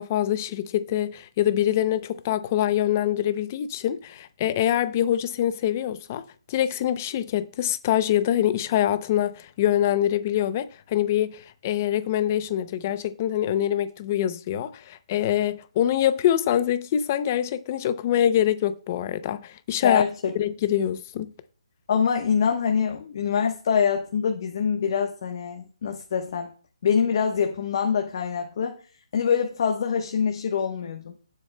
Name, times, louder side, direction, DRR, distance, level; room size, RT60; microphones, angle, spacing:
voice 1, 0.0-20.0 20.4-21.3, left 11 dB, 25° left, 0.5 m, -24 dB
voice 2, 19.8-20.3 21.9-26.5 26.8-28.8 29.1-31.1, left 7 dB, 40° left, 1.0 m, -24 dB
15.5 x 7.4 x 2.2 m
hypercardioid pair, 170°, 3 cm